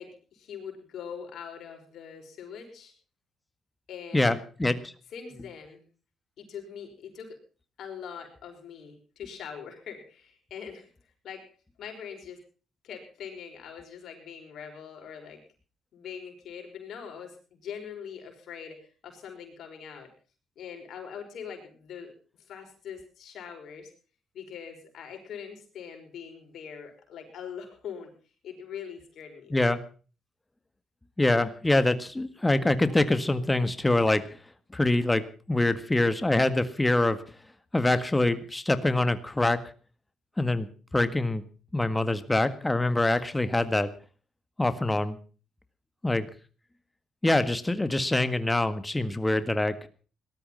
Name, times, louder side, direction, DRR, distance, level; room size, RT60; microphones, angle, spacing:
voice 1, 0.0-2.9 3.9-4.4 5.1-5.8 6.4-7.4 7.8-10.9 11.2-11.5 11.8-12.4 12.8-15.4 15.9-20.1 20.6-22.1 22.5-23.9 24.3-28.1 28.4-29.5, left 7 dB, 70° left, 3 dB, 5.4 m, -42 dB
voice 2, 4.1-4.9 29.5-29.8 31.2-34.2 34.7-37.2 37.7-39.6 40.4-41.4 41.7-43.9 44.6-45.2 46.0-46.3 47.2-49.9, left 2 dB, 15° left, 11 dB, 1.7 m, -25 dB
18.5 x 13.0 x 5.6 m, 0.39 s
cardioid pair, 90°, 0 cm